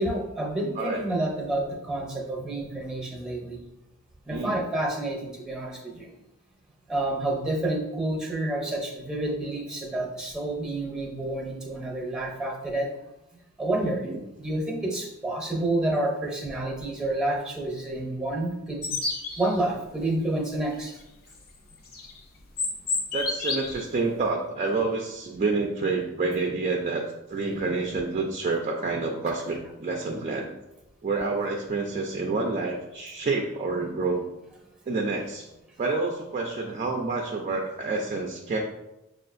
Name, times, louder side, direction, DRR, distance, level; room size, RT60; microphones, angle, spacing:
voice 1, 0.0-3.6 4.2-6.1 6.9-12.9 13.6-14.1 14.4-18.9 19.4-20.9 27.5-27.7, right 1 dB, 5° right, -1 dB, 0.7 m, -29 dB
voice 2, 13.8-14.2 23.1-27.0 27.3-30.5 31.0-34.2 34.9-35.5 35.8-38.6, right 3 dB, 35° right, 1 dB, 0.4 m, -28 dB
sound 1, 18.8-19.5 21.7-22.1 22.6-23.8, left 3 dB, 45° left, 0.6 m, -29 dB
6.3 x 2.4 x 2.5 m, 0.94 s
head